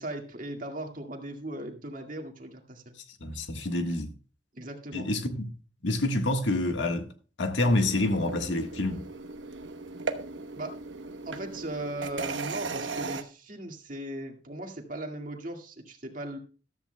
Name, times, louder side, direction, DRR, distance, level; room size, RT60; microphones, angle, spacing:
voice 1, 0.0-3.0 4.5-5.1 10.5-10.8 11.2-16.4, right 1 dB, 45° right, 1.9 m, -38 dB
voice 2, 3.0-4.1 4.9-5.5 5.8-7.1 7.4-9.1, left 2 dB, 75° left, 1.5 m, -27 dB
sound 1, 7.6-13.2, right 4 dB, 75° right, 1.0 m, -37 dB
14.5 x 13.0 x 2.2 m
head